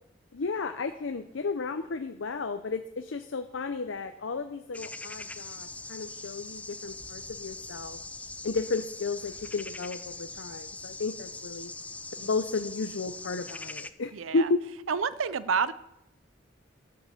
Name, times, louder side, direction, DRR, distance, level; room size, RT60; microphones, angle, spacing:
voice 1, 0.3-8.0 8.4-11.7 12.2-14.6, left 3 dB, 70° left, 8 dB, 0.6 m, -33 dB
sound 1, 4.7-13.9, left 3 dB, 5° left, 0.3 m, -42 dB
voice 2, 14.1-14.5 14.9-15.7, right 6 dB, 85° right, 15 dB, 0.5 m, -29 dB
13.5 x 5.8 x 6.6 m, 0.83 s
head